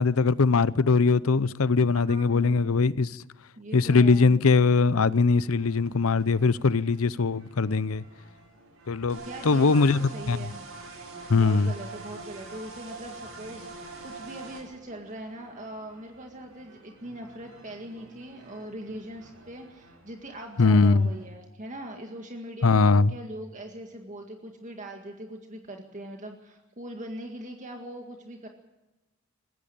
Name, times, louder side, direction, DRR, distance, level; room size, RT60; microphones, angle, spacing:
voice 1, 0.0-3.1 3.7-8.0 8.9-10.4 11.3-11.7 20.6-21.1 22.6-23.1, left 4 dB, 80° left, 0.7 m, -21 dB
voice 2, 1.9-2.7 3.6-4.4 9.3-10.6 11.3-28.5, right 1 dB, 35° right, 2.0 m, -41 dB
sound 1, 5.1-21.3, right 1 dB, 90° right, 6.3 m, -55 dB
sound 2, 9.1-14.6, right 3 dB, 65° right, 5.8 m, -42 dB
20.5 x 15.5 x 8.7 m
head